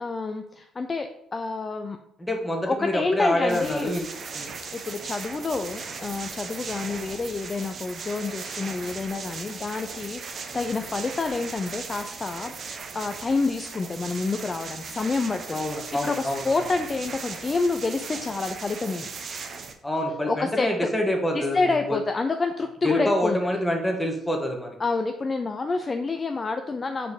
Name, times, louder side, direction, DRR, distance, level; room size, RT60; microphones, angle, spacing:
voice 1, 0.0-2.0 2.7-4.0 4.7-15.6 16.0-19.1 20.3-20.9 21.3-23.4 24.8-27.1, left 3 dB, 35° left, 7 dB, 0.5 m, -28 dB
voice 2, 2.2-4.1 4.3-4.5 15.5-16.6 19.8-21.6 21.9-22.0 22.8-24.8, left 1 dB, 15° left, 2 dB, 1.6 m, -26 dB
sound 1, 3.5-19.7, right 5 dB, 50° right, 0.8 m, -38 dB
4.7 x 4.0 x 5.0 m, 0.78 s
hypercardioid pair, 50°, 0 cm